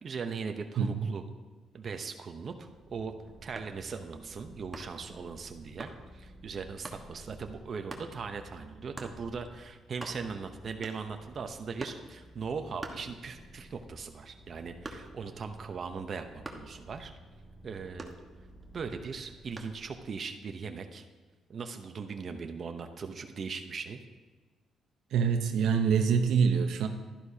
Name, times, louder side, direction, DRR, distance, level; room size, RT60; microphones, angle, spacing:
voice 1, 0.0-1.2 1.7-3.1 3.4-17.1 17.6-18.1 18.7-21.1 21.5-24.0, right 5 dB, 50° right, 6 dB, 0.8 m, -39 dB
voice 2, 0.8-1.1 25.1-26.9, right 6 dB, 80° right, 5 dB, 0.8 m, -25 dB
Purr, 2.5-20.2, equal, 15° left, 2.1 m, -53 dB
sound 1, 3.5-3.8 4.7-5.1 5.8-6.0 6.8-7.1 7.9-8.1 9.0-9.2 9.6-9.7 9.9-10.4 10.8-11.2 11.8-12.1 12.8-13.6 13.9-15.3 16.4-16.8 18.0-18.7 19.6-19.8, right 2 dB, 25° right, 1.3 m, -44 dB
12.0 x 11.0 x 2.8 m, 1.3 s
cardioid pair, 90°, 0 cm